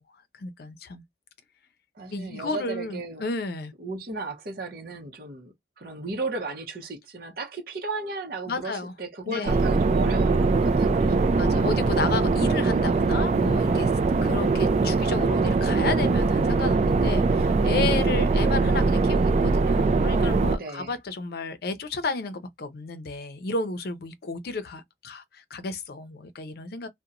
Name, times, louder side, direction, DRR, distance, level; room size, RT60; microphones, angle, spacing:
voice 1, 0.4-1.0 2.1-3.7 8.5-8.9 9.2-9.6 11.3-13.9 14.2-26.9, left 3 dB, 60° left, 0.5 m, -32 dB
voice 2, 2.0-3.2 3.8-11.4 20.5-20.9, right 3 dB, 55° right, 0.7 m, -35 dB
sound 1, 9.5-20.6, right 3 dB, 40° right, 0.3 m, -22 dB
2.8 x 2.1 x 2.4 m
head